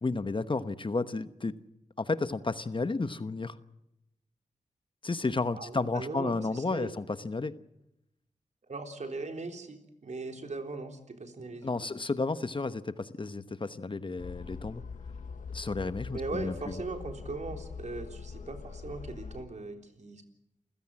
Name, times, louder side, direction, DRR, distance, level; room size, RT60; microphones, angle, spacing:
voice 1, 0.0-1.5 2.0-3.5 5.0-7.5 11.6-14.8 15.5-16.7, left 3 dB, 40° left, 12 dB, 1.1 m, -32 dB
voice 2, 5.5-6.9 8.7-11.9 16.1-20.2, right 3 dB, 60° right, 4 dB, 3.7 m, -39 dB
sound 1, 14.2-19.4, left 5 dB, 80° left, 1.2 m, -42 dB
28.5 x 16.0 x 7.5 m, 0.88 s
cardioid pair, 60°, 13 cm